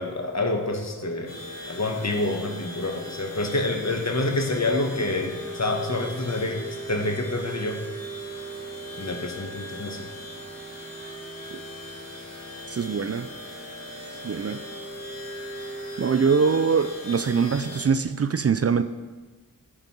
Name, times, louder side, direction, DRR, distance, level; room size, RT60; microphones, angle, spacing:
voice 1, 0.0-1.4 1.7-6.6 6.9-7.8 9.0-10.0, left 2 dB, 50° left, 4 dB, 1.4 m, -27 dB
sound 1, 1.3-17.9, right 1 dB, 65° left, 2.9 m, -38 dB
voice 2, 12.7-13.3 14.2-14.6 16.0-18.8, right 5 dB, 45° right, 11 dB, 0.5 m, -23 dB
10.0 x 5.3 x 7.5 m, 1.3 s
wide cardioid pair, 65°, 34 cm